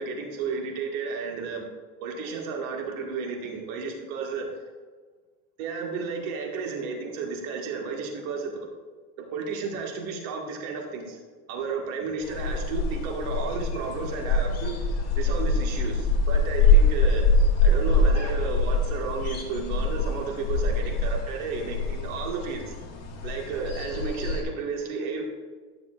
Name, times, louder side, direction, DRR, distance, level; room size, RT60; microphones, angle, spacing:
voice 1, 0.0-1.6 2.0-4.5 5.6-8.7 9.3-11.2 11.5-14.7 15.2-17.3 17.6-22.7 23.2-25.3, right 5 dB, 80° right, 1 dB, 1.9 m, -32 dB
sound 1, 12.2-24.4, left 2 dB, 40° left, 1.6 m, -24 dB
12.5 x 6.7 x 2.5 m, 1.4 s
supercardioid pair, 115°, 40 cm